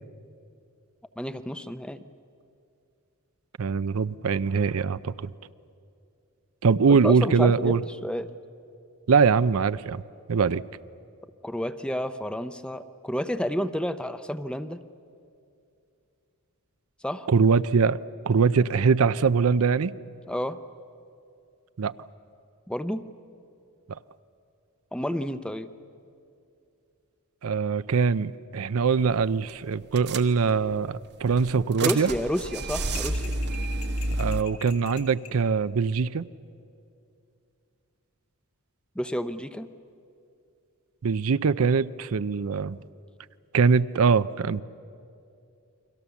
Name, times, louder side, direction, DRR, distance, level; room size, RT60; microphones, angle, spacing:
voice 1, 1.2-2.0 6.9-7.8 8.0-8.3 11.4-14.8 17.0-17.3 20.3-20.6 22.7-23.1 24.9-25.7 31.8-33.4 38.9-39.7, equal, 5° left, 11 dB, 0.6 m, -30 dB
voice 2, 3.6-5.3 6.6-7.8 9.1-10.0 10.3-10.6 17.3-19.9 21.8-21.9 23.9-24.0 27.4-32.1 34.2-36.3 41.0-42.8 43.5-44.6, right 5 dB, 70° right, 15 dB, 0.5 m, -22 dB
sound 1, 29.0-29.2 29.5-29.6 30.0-30.7 31.2-34.4, right 2 dB, 50° right, 1.1 m, -30 dB
sound 2, 32.9-35.4, left 8 dB, 75° left, 2.5 m, -45 dB
29.5 x 23.5 x 7.1 m, 2.5 s
head